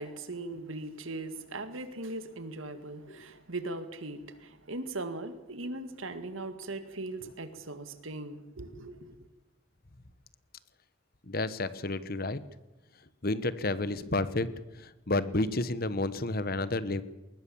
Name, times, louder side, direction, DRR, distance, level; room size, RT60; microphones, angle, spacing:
voice 1, 0.0-9.3, right 2 dB, 75° right, 2.0 m, -39 dB
voice 2, 11.3-12.4 13.2-17.0, left 2 dB, 45° left, 1.2 m, -31 dB
20.5 x 20.0 x 7.2 m
head